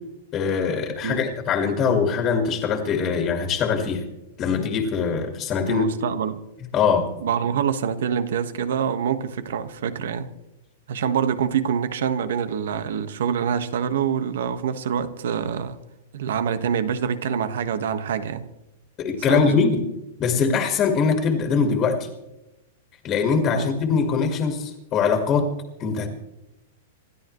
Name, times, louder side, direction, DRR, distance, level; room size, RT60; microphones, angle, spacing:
voice 1, 0.3-4.0 4.4-5.8 6.7-7.1 19.0-19.8 20.2-22.1 23.0-25.5 25.8-26.1, left 5 dB, 20° left, 2.0 m, -22 dB
voice 2, 5.7-6.4 7.2-10.3 10.9-15.8 16.1-18.5 19.3-19.7 23.5-23.7, right 7 dB, 70° right, 1.5 m, -25 dB
27.0 x 13.5 x 3.2 m
supercardioid pair, 170°, 0 cm